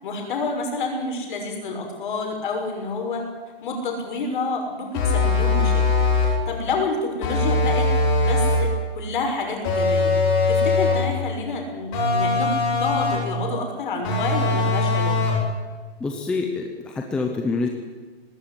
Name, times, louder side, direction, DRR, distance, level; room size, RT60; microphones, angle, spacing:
voice 1, 0.0-3.2 3.6-7.9 8.2-10.1 10.5-12.5 12.8-15.4, left 3 dB, 50° left, 2 dB, 6.3 m, -28 dB
sound 1, 4.9-6.4 7.2-8.7 9.6-11.1 11.9-13.4 14.0-15.5, left 3 dB, 25° left, 7.9 m, -21 dB
voice 2, 16.0-17.7, left 4 dB, 5° left, 2 dB, 0.7 m, -26 dB
19.0 x 16.5 x 10.0 m, 1.4 s
hypercardioid pair, 165°, 32 cm